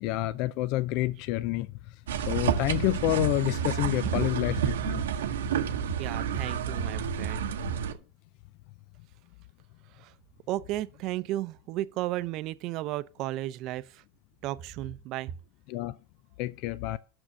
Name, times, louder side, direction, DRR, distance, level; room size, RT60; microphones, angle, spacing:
voice 1, 0.0-1.7 2.3-5.0 15.7-16.0 16.4-17.0, left 16 dB, 60° left, 0.3 m, -28 dB
sound 1, 2.1-7.9, right 7 dB, 90° right, 0.9 m, -30 dB
voice 2, 6.0-7.4 7.9-8.0 9.9-10.1 10.5-14.0 14.4-15.3, right 15 dB, 50° right, 0.6 m, -34 dB
6.3 x 6.1 x 6.9 m
hypercardioid pair, 110°, 0 cm